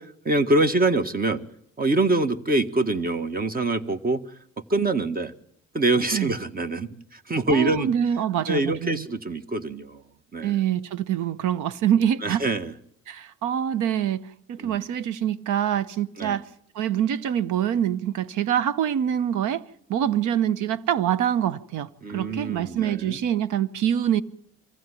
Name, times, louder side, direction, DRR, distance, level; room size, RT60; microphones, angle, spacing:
voice 1, 0.0-1.4 1.8-4.4 4.7-5.3 5.7-7.9 8.5-10.0 10.3-10.6 12.2-12.7 14.6-14.9 16.2-16.4 22.0-23.2, right 2 dB, 30° right, 1.8 m, -25 dB
voice 2, 7.5-9.0 10.4-12.4 13.1-16.4 16.7-19.6 19.9-24.2, right 10 dB, 85° right, 1.0 m, -25 dB
24.0 x 15.5 x 9.9 m
cardioid pair, 90°, 30 cm